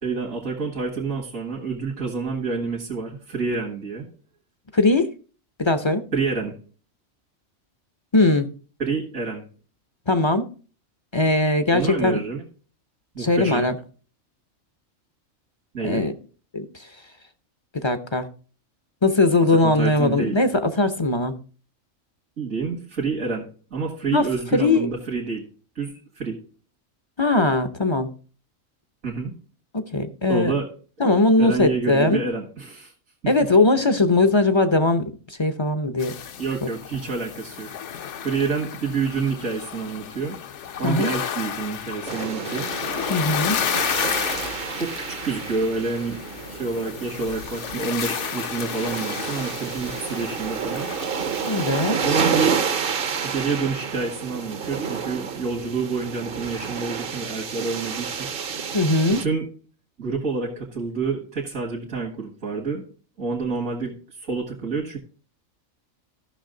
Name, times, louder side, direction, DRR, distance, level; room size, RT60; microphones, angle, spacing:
voice 1, 0.0-4.1 6.1-6.6 8.8-9.4 11.7-12.4 13.2-13.7 15.7-16.0 19.6-20.4 22.4-25.4 25.8-26.4 29.0-29.3 30.3-30.7 31.4-32.9 36.4-37.7 38.2-40.4 40.8-42.7 44.8-46.2 46.5-50.9 52.0-52.6 53.2-58.3 59.2-59.4 60.0-62.8 63.2-65.0, right 4 dB, 75° right, -1 dB, 2.2 m, -28 dB
voice 2, 4.7-5.1 5.6-6.0 8.1-8.5 10.1-10.5 11.1-12.2 13.2-13.7 15.8-16.1 16.5-16.6 17.7-18.3 19.0-21.4 24.1-24.3 24.5-24.9 27.2-28.1 29.7-30.5 31.0-32.2 33.3-36.1 40.8-41.1 43.1-43.6 51.5-52.2 58.7-59.2, left 2 dB, 30° left, 10 dB, 0.5 m, -20 dB
sound 1, 36.0-51.9, left 8 dB, 65° left, 1.0 m, -32 dB
sound 2, 42.1-59.3, right 6 dB, 50° right, 0.8 m, -30 dB
14.5 x 6.1 x 3.8 m, 0.38 s
omnidirectional pair, 1.4 m